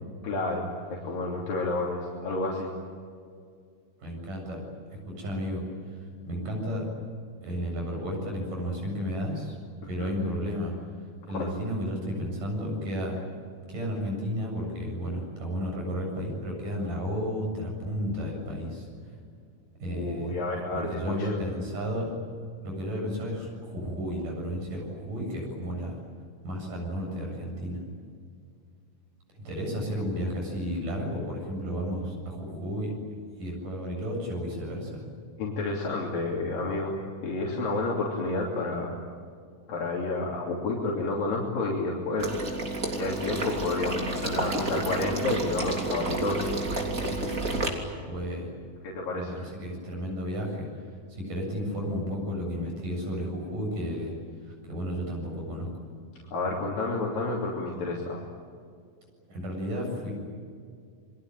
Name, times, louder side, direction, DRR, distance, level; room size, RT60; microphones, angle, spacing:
voice 1, 0.2-2.7 10.0-10.1 11.3-11.5 19.9-21.4 35.4-37.0 37.2-38.9 39.7-42.4 42.9-46.5 48.8-49.4 56.3-58.2, left 2 dB, 80° left, -3 dB, 4.7 m, -30 dB
voice 2, 4.0-4.6 4.9-5.6 5.9-6.9 7.4-9.6 9.9-10.7 11.3-13.1 13.7-18.9 19.8-20.4 20.7-22.1 22.6-26.0 26.4-27.8 29.4-32.9 33.4-35.0 48.0-48.5 49.1-50.7 51.1-54.1 54.4-55.7 59.3-60.1, equal, 70° right, 1 dB, 9.2 m, -32 dB
Water / Liquid, 42.2-47.7, right 2 dB, 25° right, 3.3 m, -30 dB
29.0 x 22.5 x 9.2 m, 2.2 s
omnidirectional pair, 3.9 m